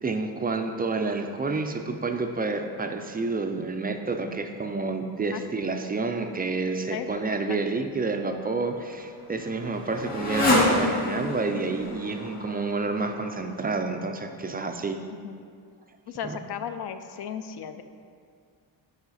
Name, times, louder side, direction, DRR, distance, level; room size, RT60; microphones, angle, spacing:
voice 1, 0.0-15.0 16.2-16.4, right 3 dB, 25° right, 6 dB, 0.3 m, -29 dB
voice 2, 6.9-7.4 15.2-15.4 16.1-17.8, left 8 dB, 60° left, 9 dB, 0.5 m, -35 dB
Motorcycle, 8.4-13.7, left 1 dB, 35° left, 1.7 m, -28 dB
10.5 x 4.8 x 4.1 m, 2.2 s
cardioid pair, 140°, 46 cm